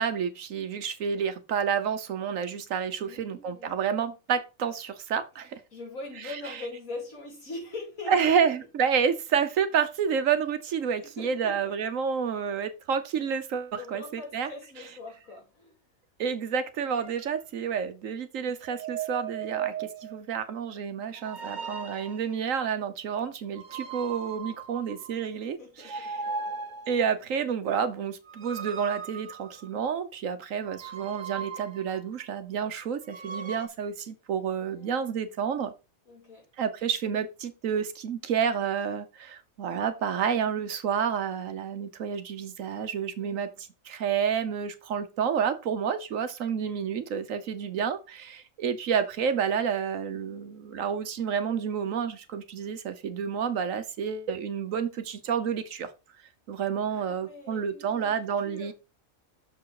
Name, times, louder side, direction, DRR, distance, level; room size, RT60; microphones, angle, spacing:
voice 1, 0.0-5.6 6.2-6.6 8.1-14.5 16.2-26.1 26.9-35.7 36.6-55.9 56.5-58.7, right 7 dB, 70° right, 1.2 m, -29 dB
voice 2, 3.0-4.0 5.7-8.4 11.0-11.7 13.8-15.7 25.4-26.4 34.6-35.3 36.1-36.4 43.2-43.5 56.9-58.7, left 3 dB, 75° left, 3.2 m, -42 dB
sound 1, 16.9-17.2 18.6-20.2 21.2-22.3 23.5-25.3 25.8-27.0 28.3-29.8 30.6-32.0 33.0-33.7, right 6 dB, 40° right, 0.9 m, -37 dB
6.8 x 4.5 x 4.7 m
omnidirectional pair, 1.4 m